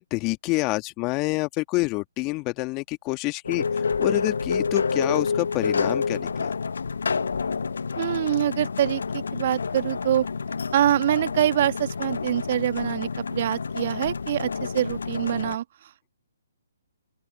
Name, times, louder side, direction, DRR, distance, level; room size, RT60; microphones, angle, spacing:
voice 1, 0.0-6.5, left 24 dB, 25° left, 1.6 m, -27 dB
sound 1, 3.4-15.6, left 5 dB, 70° left, 0.7 m, -28 dB
voice 2, 8.0-10.3 10.7-15.6, right 11 dB, 45° right, 1.6 m, -25 dB
open air
figure-of-eight pair, 135°, 0 cm